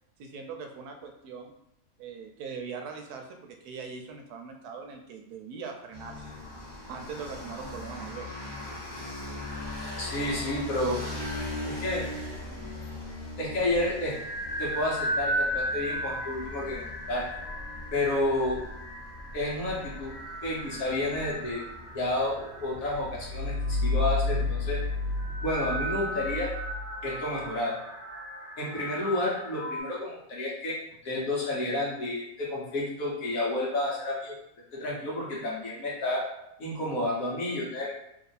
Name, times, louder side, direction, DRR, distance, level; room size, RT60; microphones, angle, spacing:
voice 1, 0.2-1.5 2.0-6.3 6.9-8.3, right 5 dB, 85° right, 4 dB, 1.1 m, -41 dB
sound 1, 5.9-25.7, left 1 dB, 25° right, 0.6 m, -41 dB
voice 2, 10.0-11.1 11.6-12.0 13.4-14.1 14.6-17.3 17.9-18.6 19.3-20.2 20.4-21.6 21.9-24.8 25.4-26.5 27.0-27.8 28.6-30.8 31.0-34.3 34.7-36.2 36.6-38.0, left 1 dB, 65° left, -4 dB, 1.5 m, -30 dB
sound 2, 13.7-29.8, equal, 35° left, 1.5 m, -37 dB
sound 3, 22.8-27.5, left 2 dB, 85° left, 1.1 m, -30 dB
3.2 x 2.6 x 4.0 m, 0.80 s
omnidirectional pair, 1.6 m